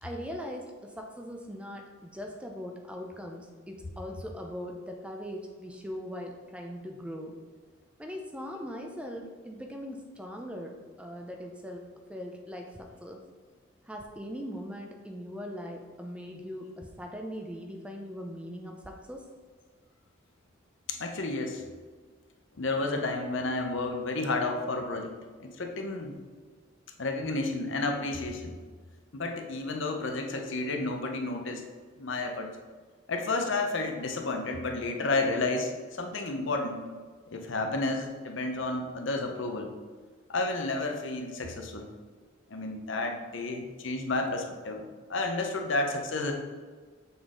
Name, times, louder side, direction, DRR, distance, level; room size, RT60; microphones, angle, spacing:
voice 1, 0.0-7.3 8.0-13.2 13.9-19.3, equal, 5° right, 2 dB, 0.4 m, -40 dB
voice 2, 20.9-21.6 22.6-25.1 25.4-26.2 27.0-28.5 29.1-31.6 32.0-32.5 33.1-36.8 37.3-39.7 40.3-41.9 42.5-46.3, left 2 dB, 65° left, 3 dB, 0.7 m, -31 dB
7.0 x 3.9 x 3.7 m, 1.5 s
head